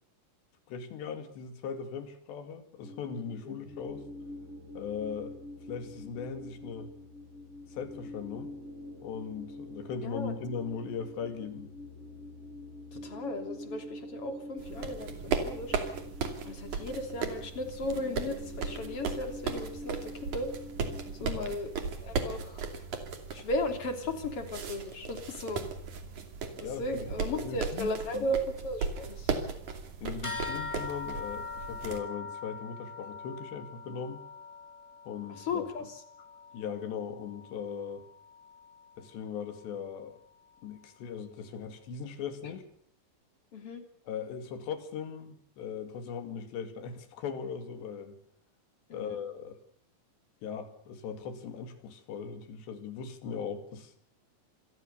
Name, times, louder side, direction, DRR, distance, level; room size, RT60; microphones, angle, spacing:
voice 1, 0.7-4.0 4.7-5.4 5.7-6.9 7.7-8.5 9.0-11.7 21.2-21.6 26.6-27.1 27.4-28.3 30.0-34.2 35.1-35.7 36.5-38.1 39.0-40.2 40.6-42.6 44.1-48.2 48.9-49.6 50.4-53.9, left 6 dB, 90° left, 4.6 m, -39 dB
sound 1, 2.8-21.3, left 1 dB, 30° right, 7.9 m, -46 dB
voice 2, 10.0-10.3 12.9-15.8 16.5-20.5 21.1-21.7 22.0-22.7 23.3-25.7 26.6-29.3 35.3-36.0 43.5-43.8 48.9-49.2, left 1 dB, 35° left, 3.7 m, -36 dB
sound 2, 14.6-32.0, right 5 dB, 50° right, 3.8 m, -37 dB
sound 3, 30.2-40.0, left 4 dB, 10° left, 2.8 m, -43 dB
27.0 x 21.0 x 6.9 m
omnidirectional pair, 4.8 m